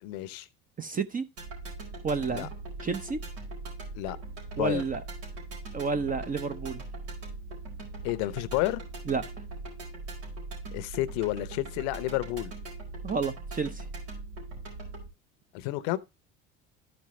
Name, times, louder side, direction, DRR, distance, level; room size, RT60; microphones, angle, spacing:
voice 1, 0.0-0.5 2.3-2.5 3.9-4.2 4.6-4.8 8.0-8.8 10.7-12.5 15.5-16.0, left 17 dB, 85° left, 0.8 m, -30 dB
voice 2, 0.8-1.2 2.0-2.5 2.8-3.2 4.6-5.0 5.7-6.8 9.1-9.2 13.0-13.9, right 4 dB, 25° right, 0.7 m, -30 dB
sound 1, 1.4-15.1, right 3 dB, 85° right, 4.5 m, -40 dB
13.0 x 5.3 x 3.1 m
supercardioid pair, 95°, 32 cm